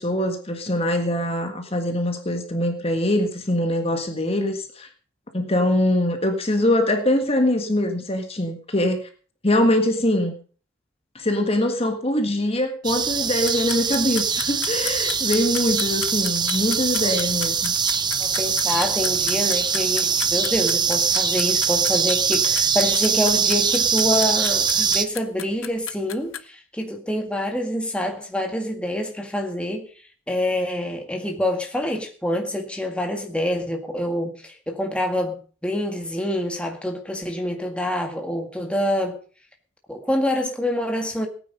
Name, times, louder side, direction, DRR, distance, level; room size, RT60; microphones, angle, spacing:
voice 1, 0.0-4.9 5.3-9.0 9.4-10.3 11.1-17.7, left 1 dB, 30° left, 5 dB, 1.7 m, -23 dB
sound 1, 12.8-25.0, right 6 dB, 20° right, 0.8 m, -22 dB
sound 2, 13.5-26.4, left 12 dB, 70° left, 1.0 m, -33 dB
voice 2, 18.2-29.9 30.3-39.2 39.9-41.3, left 1 dB, 5° left, 3 dB, 1.9 m, -26 dB
18.0 x 9.5 x 5.4 m, 0.40 s
head